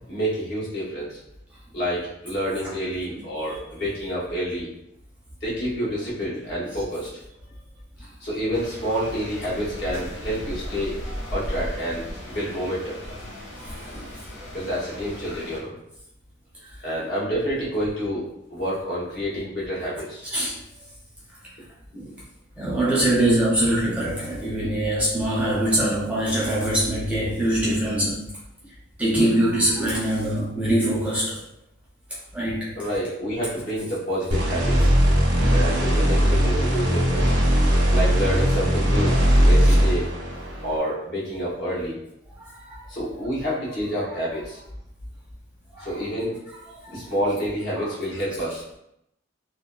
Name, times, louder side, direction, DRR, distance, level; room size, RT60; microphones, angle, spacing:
voice 1, 0.1-1.2 1.7-4.7 5.4-7.2 8.2-11.0 11.3-13.0 13.9-14.1 14.5-15.7 16.8-18.2 18.5-20.3 21.9-22.1 32.8-34.9 35.5-37.3 37.9-40.1 40.6-41.9 42.9-44.6 45.8-46.4 46.9-48.6, equal, 55° left, -7 dB, 1.0 m, -28 dB
sound 1, 8.5-15.6, equal, 85° left, 0.7 m, -36 dB
voice 2, 22.6-28.3 29.0-31.4 32.3-32.7 42.4-42.8 45.7-45.9 46.8-47.0 47.8-47.9, right 1 dB, 5° right, -7 dB, 0.5 m, -23 dB
sound 2, 34.3-40.8, equal, 60° right, 0.5 m, -19 dB
2.6 x 2.1 x 2.3 m, 0.79 s
head